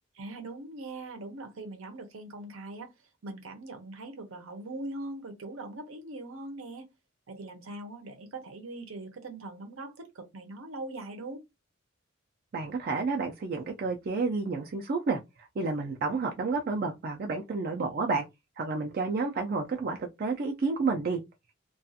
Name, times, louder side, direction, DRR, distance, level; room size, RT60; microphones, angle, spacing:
voice 1, 0.2-2.9 3.2-6.9 7.3-11.4, right 2 dB, 80° right, 0.7 m, -41 dB
voice 2, 12.5-18.2 18.6-21.2, right 4 dB, 45° right, 0.4 m, -30 dB
2.4 x 2.3 x 2.6 m
head